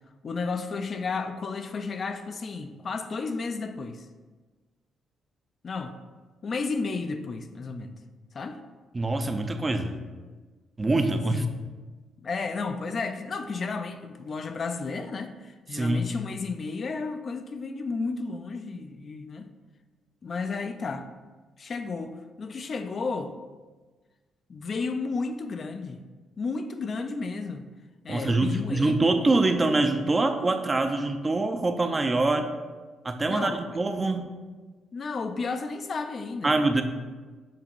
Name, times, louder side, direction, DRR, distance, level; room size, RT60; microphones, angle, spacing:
voice 1, 0.2-4.1 5.6-6.0 6.4-8.0 8.3-8.6 11.3-11.5 12.2-19.5 20.2-21.1 21.6-23.4 24.5-26.0 26.4-27.7 28.0-29.1 33.3-33.6 34.9-36.5, left 4 dB, 45° left, 8 dB, 0.4 m, -32 dB
voice 2, 8.9-10.0 10.8-11.4 15.7-16.0 28.1-32.5 33.0-34.2 36.4-36.8, right 2 dB, 25° right, 7 dB, 0.5 m, -24 dB
7.2 x 2.9 x 4.4 m, 1.3 s
cardioid pair, 90°, 0 cm